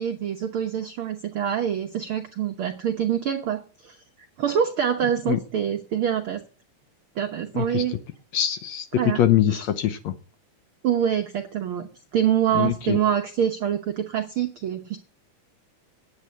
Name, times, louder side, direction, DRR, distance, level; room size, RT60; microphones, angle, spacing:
voice 1, 0.0-4.0 4.4-6.4 7.1-8.0 9.0-9.2 9.5-9.6 10.8-15.0, right 9 dB, 80° right, 5 dB, 1.2 m, -25 dB
voice 2, 8.3-8.9 9.2-10.1 12.5-13.0, left 11 dB, 70° left, 9 dB, 1.8 m, -23 dB
9.7 x 8.5 x 8.9 m, 0.41 s
omnidirectional pair, 3.8 m